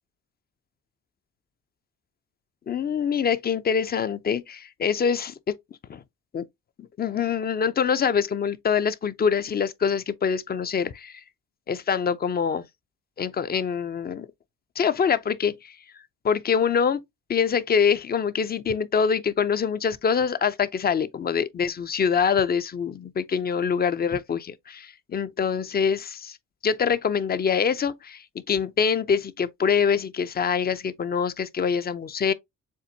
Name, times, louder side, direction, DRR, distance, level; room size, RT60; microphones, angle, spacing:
voice 1, 2.7-5.6 5.9-6.0 6.3-6.4 6.8-11.2 11.7-12.7 13.2-14.3 14.8-15.8 16.2-17.0 17.3-26.4 26.6-32.3, left 6 dB, 30° left, 0.5 m, -25 dB
7.2 x 2.5 x 2.7 m
cardioid pair, 90°, 30 cm